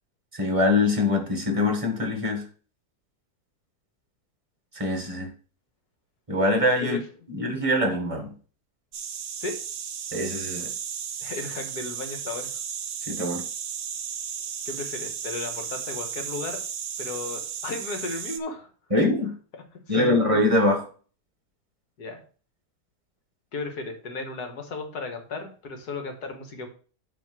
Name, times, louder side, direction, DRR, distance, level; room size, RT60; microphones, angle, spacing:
voice 1, 0.3-2.4 4.7-5.3 6.3-7.0 7.3-8.3 10.1-10.7 13.1-13.4 18.9-19.3 19.9-20.8, left 2 dB, 20° right, 3 dB, 1.6 m, -23 dB
sound 1, 8.9-18.4, right 8 dB, 55° right, 0.9 m, -34 dB
voice 2, 11.2-12.6 14.7-16.6 17.0-18.7 19.9-20.2 22.0-22.2 23.5-26.7, left 3 dB, 75° left, 5 dB, 1.9 m, -35 dB
8.5 x 3.6 x 6.1 m, 0.40 s
omnidirectional pair, 1.7 m